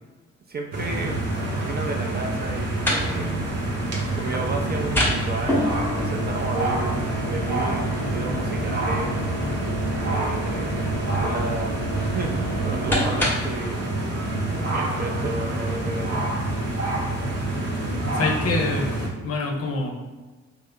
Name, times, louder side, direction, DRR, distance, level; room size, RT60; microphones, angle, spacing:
voice 1, 0.5-3.4 4.1-9.2 10.0-14.0 14.6-16.8, right 3 dB, 30° right, 1 dB, 0.6 m, -33 dB
sound 1, 0.7-19.1, right 1 dB, 50° right, 1.0 m, -27 dB
sound 2, 2.4-13.6, equal, 5° left, 0.9 m, -30 dB
voice 2, 17.8-18.9 19.2-19.9, left 3 dB, 45° left, 2 dB, 0.7 m, -26 dB
3.1 x 2.1 x 3.6 m, 1.2 s
hypercardioid pair, 40°, 33 cm